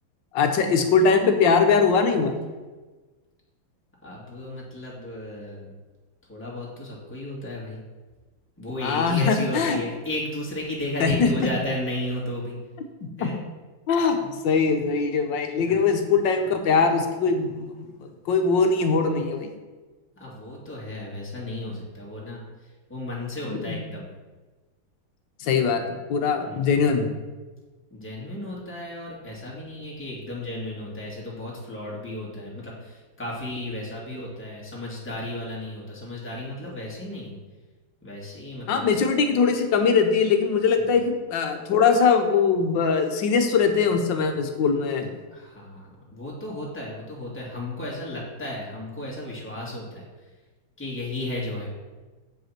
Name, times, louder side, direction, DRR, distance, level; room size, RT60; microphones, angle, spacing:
voice 1, 0.3-2.3 8.8-9.8 11.0-11.5 13.2-13.3 13.9-14.2 14.4-17.7 18.3-19.5 23.4-23.8 25.4-27.1 38.7-45.1, left 5 dB, 70° left, 6 dB, 1.6 m, -21 dB
voice 2, 4.0-5.7 6.3-7.8 8.6-12.6 13.2-13.4 14.0-14.3 15.7-15.8 20.2-24.1 26.4-26.8 27.9-37.4 38.0-38.9 40.8-41.0 45.3-50.1 50.8-51.7, left 1 dB, 5° left, -5 dB, 2.1 m, -34 dB
7.9 x 5.4 x 5.9 m, 1.3 s
omnidirectional pair, 2.2 m